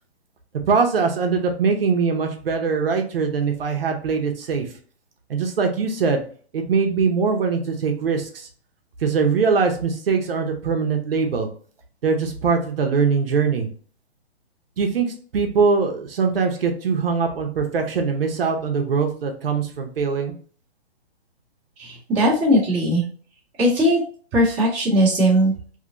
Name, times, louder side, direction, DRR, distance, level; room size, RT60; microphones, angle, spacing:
voice 1, 0.7-4.7 5.3-6.2 6.5-8.5 9.0-11.5 12.0-13.7 14.8-20.3, right 5 dB, 60° right, 3 dB, 0.8 m, -22 dB
voice 2, 21.8-23.0 23.6-24.0 24.3-25.7, equal, ahead, -23 dB, 0.4 m, -19 dB
2.9 x 2.5 x 2.8 m, 0.43 s
hypercardioid pair, 160°, 32 cm